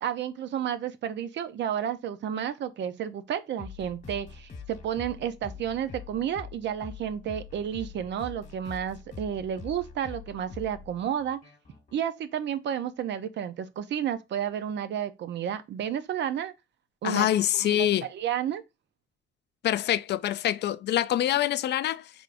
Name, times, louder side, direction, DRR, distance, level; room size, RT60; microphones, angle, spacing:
voice 1, 0.0-11.4 11.9-16.5 17.0-18.6, right 9 dB, 65° right, 0.6 m, -31 dB
sound 1, 3.6-12.0, left 5 dB, 40° left, 1.3 m, -44 dB
voice 2, 17.0-18.1 19.6-22.1, left 12 dB, 60° left, 0.4 m, -25 dB
4.7 x 3.5 x 2.5 m
cardioid pair, 90°, 20 cm